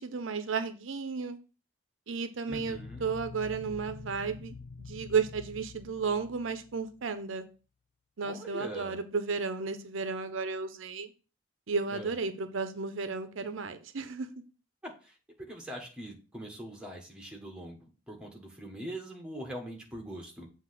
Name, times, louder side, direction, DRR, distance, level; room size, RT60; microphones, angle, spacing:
voice 1, 0.0-1.4 2.1-7.4 8.2-11.1 11.7-14.3, right 5 dB, 80° right, 10 dB, 0.6 m, -33 dB
sound 1, 2.5-7.2, left 4 dB, 75° left, 0.5 m, -46 dB
voice 2, 2.5-3.0 8.2-9.0 11.9-12.1 14.8-20.5, right 1 dB, 5° right, 0 dB, 1.3 m, -42 dB
7.4 x 2.9 x 5.8 m, 0.35 s
head